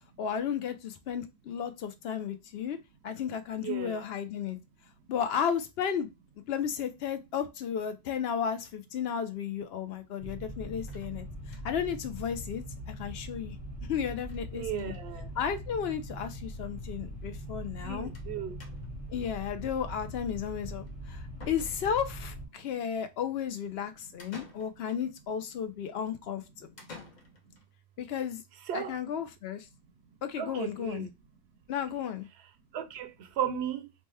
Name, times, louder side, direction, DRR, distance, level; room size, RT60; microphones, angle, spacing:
voice 1, 0.2-2.8 3.0-4.6 5.1-6.1 6.5-11.2 11.6-13.5 13.9-14.9 15.4-18.1 19.1-26.7 28.0-28.4 28.7-29.7 30.2-31.1 31.7-32.3, left 8 dB, 75° left, 0.8 m, -33 dB
voice 2, 3.6-4.0 14.5-15.3 17.8-18.6 28.7-29.0 30.4-31.1 32.7-33.1 33.4-33.9, right 9 dB, 85° right, 0.8 m, -35 dB
sound 1, 10.2-22.5, equal, 25° left, 1.2 m, -41 dB
sound 2, 10.9-11.9 12.2-12.3 12.6-12.7 12.9-13.0 14.2-14.4 14.7-15.1 15.9-16.0 16.3-16.4 18.1-18.3 18.6-19.1 20.9-21.0 21.4-22.2 24.2-25.1 26.8-27.7, left 4 dB, 45° left, 0.9 m, -51 dB
3.0 x 2.2 x 3.2 m
omnidirectional pair, 1.1 m